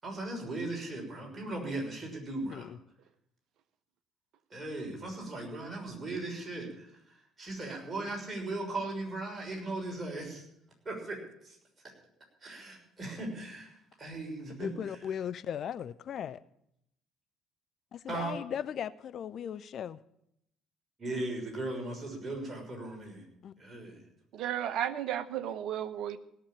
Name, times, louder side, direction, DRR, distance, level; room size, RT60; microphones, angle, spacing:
voice 1, 0.0-2.7 4.5-10.4 10.8-11.6 12.4-13.7 14.0-15.0 18.1-18.3 21.0-23.2 23.6-24.0, right 2 dB, 20° right, -1 dB, 6.3 m, -38 dB
voice 2, 14.6-16.4 17.9-20.0 23.4-23.5, left 9 dB, 50° left, 14 dB, 0.5 m, -37 dB
voice 3, 24.3-26.2, right 10 dB, 55° right, 11 dB, 0.9 m, -33 dB
17.5 x 7.1 x 8.9 m, 0.75 s
figure-of-eight pair, 50°, 0 cm